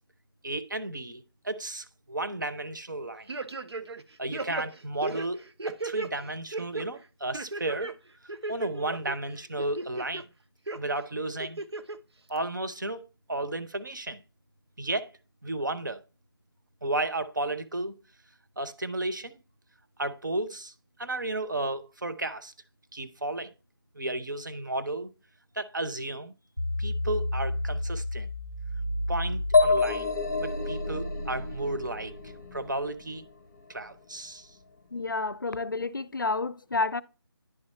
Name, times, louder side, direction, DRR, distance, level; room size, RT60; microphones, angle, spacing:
voice 1, 0.4-3.3 4.2-5.4 5.8-7.9 8.5-10.2 10.7-11.6 12.3-14.2 14.8-15.1 15.4-16.0 16.8-17.9 18.6-19.4 20.0-20.7 21.0-22.5 22.9-23.5 23.9-25.1 25.5-26.3 26.8-28.3 29.1-30.1 30.4-33.2 33.7-34.5, right 2 dB, 50° right, 0.7 m, -33 dB
sound 1, 3.3-4.0 4.3-6.1 6.5-6.9 7.3-7.9 8.3-9.2 9.6-10.2 10.7-10.8 11.4-12.0 12.4-12.5, right 3 dB, 90° right, 0.8 m, -35 dB
sound 2, 26.6-32.8, left 1 dB, 25° right, 0.4 m, -33 dB
sound 3, 29.5-33.2, left 4 dB, 15° left, 0.8 m, -27 dB
voice 2, 34.9-37.0, left 3 dB, 55° left, 0.4 m, -30 dB
10.0 x 3.8 x 4.2 m
figure-of-eight pair, 180°, 13 cm